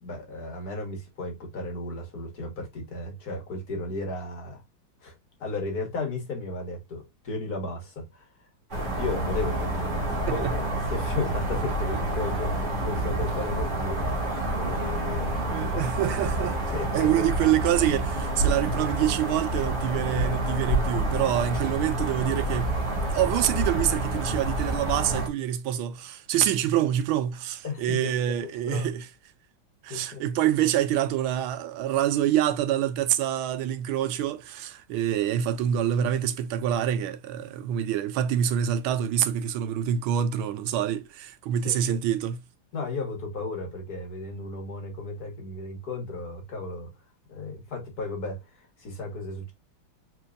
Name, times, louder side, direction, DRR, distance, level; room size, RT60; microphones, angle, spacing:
voice 1, 0.0-4.6 5.0-5.2 5.4-8.3 8.9-14.1 14.6-15.6 16.7-17.3 27.6-28.1 28.7-28.9 29.9-30.3 41.6-42.0 42.7-46.9 47.3-49.5, left 3 dB, 50° left, 1.7 m, -34 dB
sound 1, 8.7-25.3, right 1 dB, 30° right, 1.1 m, -28 dB
voice 2, 15.5-16.6 16.9-22.7 23.1-29.0 29.8-42.4, right 10 dB, 80° right, 1.4 m, -26 dB
4.5 x 3.5 x 2.5 m
omnidirectional pair, 2.3 m